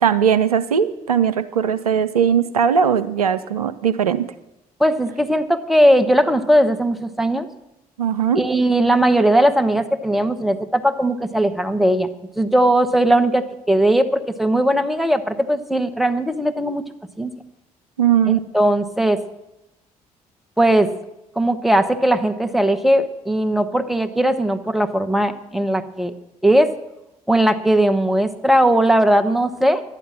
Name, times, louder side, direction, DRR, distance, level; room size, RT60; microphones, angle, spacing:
voice 1, 0.0-4.3 8.0-8.4 18.0-18.4, right 8 dB, 85° right, 12 dB, 0.4 m, -19 dB
voice 2, 4.8-7.5 8.3-12.1 12.4-16.8 17.2-17.3 18.3-19.2 20.6-20.9 21.4-26.1 26.4-26.7 27.3-29.8, right 1 dB, ahead, 9 dB, 0.9 m, -18 dB
12.0 x 9.2 x 7.2 m, 0.90 s
figure-of-eight pair, 45°, 19 cm